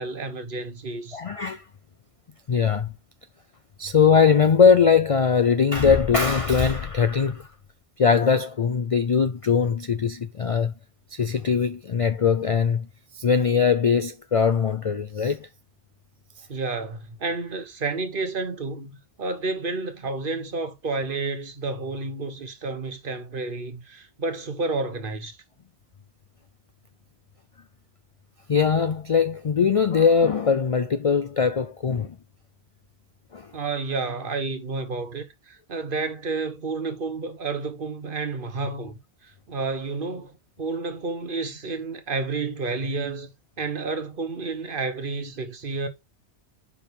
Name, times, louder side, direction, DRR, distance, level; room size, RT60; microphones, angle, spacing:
voice 1, 0.0-1.2 16.5-25.4 33.5-40.3 40.6-43.3 43.6-45.9, right 3 dB, 50° right, 1.2 m, -30 dB
voice 2, 1.1-1.6 2.5-2.9 3.8-7.5 8.0-10.7 11.1-12.9 13.1-15.5 28.5-32.2 33.3-33.5, left 6 dB, 60° left, 0.3 m, -21 dB
5.4 x 4.7 x 5.1 m
omnidirectional pair, 1.2 m